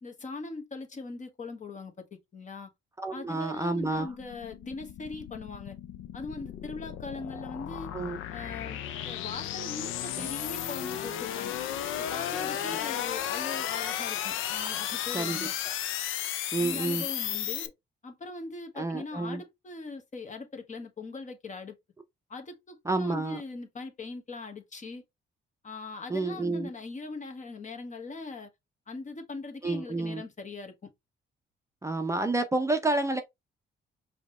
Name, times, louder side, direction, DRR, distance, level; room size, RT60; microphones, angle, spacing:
voice 1, 0.0-2.7 3.1-5.8 6.1-7.9 8.3-11.6 12.0-15.5 16.6-17.7 18.0-21.7 22.3-25.0 25.6-28.5 28.9-30.9, left 3 dB, 40° left, 1.2 m, -40 dB
voice 2, 3.0-4.1 7.9-8.2 10.2-10.3 15.1-15.4 15.6-15.7 16.5-17.3 18.8-19.4 22.8-23.4 26.1-26.7 29.6-30.2 31.8-33.2, right 2 dB, 15° right, 0.5 m, -30 dB
sound 1, 3.8-17.7, left 11 dB, 85° left, 0.5 m, -34 dB
5.0 x 2.8 x 3.1 m
cardioid pair, 90°, 20 cm